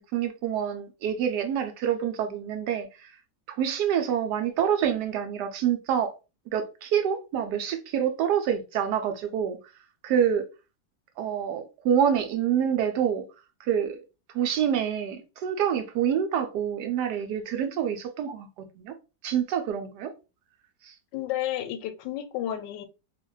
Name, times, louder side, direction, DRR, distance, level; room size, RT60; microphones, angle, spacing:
voice 1, 0.1-3.2 3.5-6.1 6.5-9.6 10.0-10.5 11.2-13.2 13.6-14.0 14.3-19.0 19.2-20.1 20.8-20.9, right 8 dB, 75° right, 1.1 m, -27 dB
voice 2, 21.1-22.9, left 12 dB, 80° left, 1.2 m, -31 dB
2.8 x 2.4 x 3.0 m
omnidirectional pair, 1.9 m